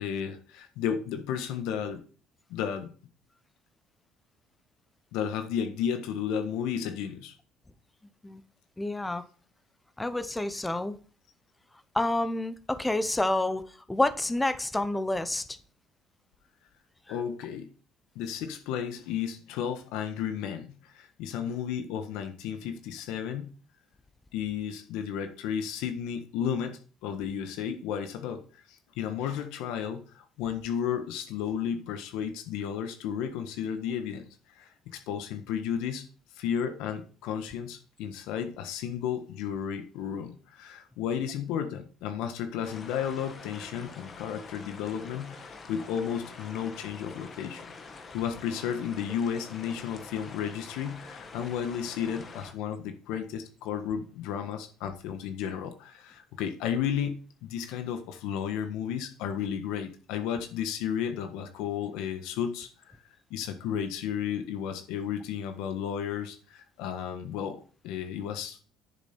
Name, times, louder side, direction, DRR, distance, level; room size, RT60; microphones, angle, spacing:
voice 1, 0.0-2.0 2.5-2.9 5.1-7.3 17.1-17.7 18.1-23.5 24.3-28.4 28.7-36.1 36.3-47.7 48.1-63.0 63.3-68.6, left 8 dB, 80° left, 1.4 m, -33 dB
voice 2, 8.8-9.2 10.0-11.0 11.9-15.6, left 2 dB, 5° left, 0.6 m, -29 dB
sound 1, 42.6-52.5, left 4 dB, 25° left, 1.3 m, -46 dB
10.5 x 7.0 x 4.5 m
cardioid pair, 165°, 0 cm